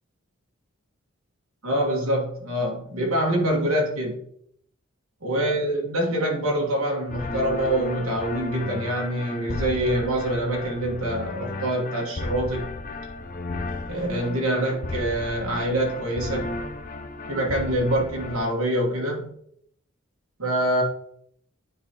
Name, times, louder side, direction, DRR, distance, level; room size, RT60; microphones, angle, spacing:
voice 1, 1.6-4.2 5.2-12.7 13.9-16.5 17.3-19.3 20.4-20.8, right 1 dB, 80° right, -1 dB, 1.7 m, -25 dB
sound 1, 7.1-18.4, left 2 dB, 40° left, 0.5 m, -34 dB
9.4 x 4.0 x 3.0 m, 0.67 s
head